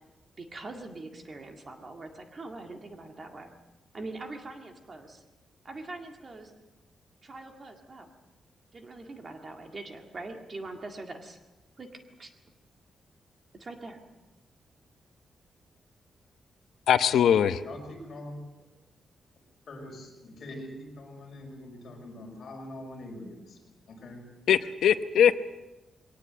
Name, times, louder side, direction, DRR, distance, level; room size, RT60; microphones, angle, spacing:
voice 1, 0.4-3.5 3.9-5.2 5.6-6.5 7.2-8.1 8.7-11.4 11.8-11.9 12.2-12.3 13.6-14.0, right 2 dB, 30° right, 4 dB, 2.0 m, -42 dB
voice 2, 16.9-17.6 24.5-25.4, left 9 dB, 85° left, 11 dB, 1.0 m, -21 dB
voice 3, 17.6-18.4 19.7-23.6 23.9-24.2, left 1 dB, 45° left, 1 dB, 5.9 m, -43 dB
22.0 x 18.5 x 7.9 m, 1.1 s
wide cardioid pair, 175°, 0 cm